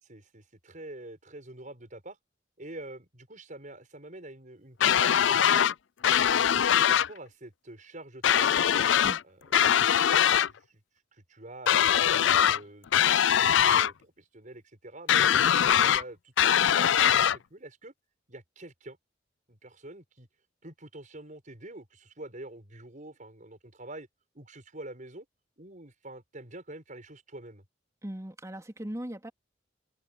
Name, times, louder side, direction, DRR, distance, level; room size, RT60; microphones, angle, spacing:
voice 1, 0.0-2.2 2.6-5.7 6.2-8.8 9.2-10.8 11.1-17.9 18.3-19.0 19.5-20.3 20.6-24.1 24.3-25.3 25.6-27.6, right 1 dB, 45° right, 6.8 m, -46 dB
sound 1, 4.8-5.7 6.0-7.1 8.2-9.2 9.5-10.5 11.7-12.6 12.9-13.9 15.1-16.0 16.4-17.4, left 9 dB, 80° left, 0.4 m, -22 dB
voice 2, 28.0-29.3, right 1 dB, 15° right, 3.0 m, -38 dB
head